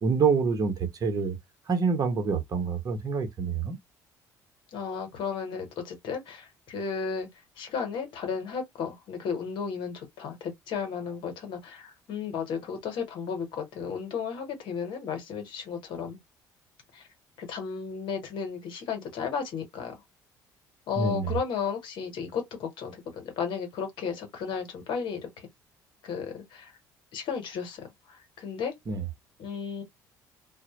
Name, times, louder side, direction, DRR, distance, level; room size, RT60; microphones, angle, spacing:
voice 1, 0.0-1.4 1.7-3.8 21.0-21.3 28.9-29.0, right 5 dB, 45° right, 0.9 m, -26 dB
voice 2, 4.7-7.3 7.6-16.2 16.9-17.0 17.4-20.0 20.9-25.5 26.0-26.7 27.1-28.7 29.4-29.8, left 6 dB, 65° left, 1.0 m, -34 dB
2.1 x 2.0 x 2.9 m
hypercardioid pair, 60°, 9 cm